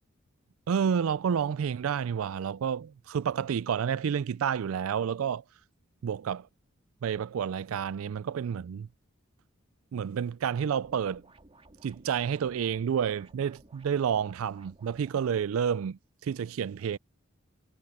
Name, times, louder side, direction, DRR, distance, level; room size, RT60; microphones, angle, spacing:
voice 1, 0.7-5.4 6.0-6.5 7.0-8.9 9.9-11.2 11.8-17.0, right 7 dB, 85° right, 0.4 m, -30 dB
sound 1, 10.8-15.2, right 2 dB, 30° right, 2.1 m, -57 dB
head